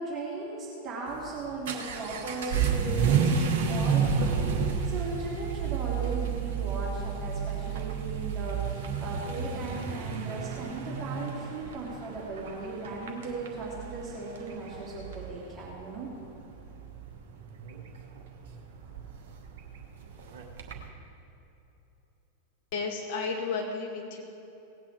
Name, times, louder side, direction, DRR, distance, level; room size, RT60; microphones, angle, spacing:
voice 1, 0.0-16.1, right 3 dB, 25° right, -5 dB, 2.6 m, -37 dB
Vehicle / Accelerating revving vroom, 1.1-20.9, right 6 dB, 55° right, 1.3 m, -31 dB
voice 2, 22.7-24.2, left 4 dB, 45° left, 1 dB, 1.9 m, -32 dB
18.0 x 8.8 x 4.7 m, 3.0 s
figure-of-eight pair, 90°, 0 cm